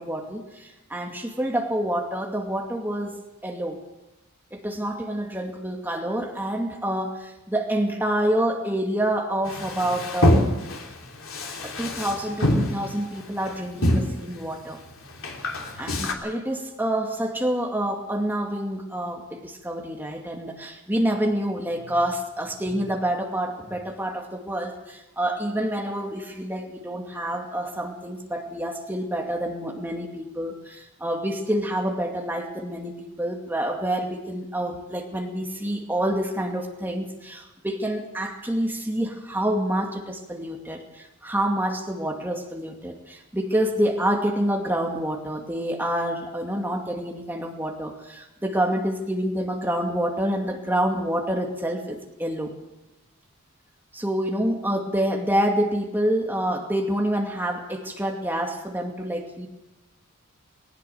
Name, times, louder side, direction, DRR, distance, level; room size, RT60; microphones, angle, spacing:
voice 1, 0.0-3.8 4.5-10.5 11.3-14.8 15.8-52.5 53.9-59.6, right 1 dB, 10° right, 1 dB, 2.4 m, -27 dB
Male speech man speaking, 9.4-16.1, left 1 dB, 65° left, 3.1 m, -25 dB
19.5 x 19.0 x 7.0 m, 1.0 s
head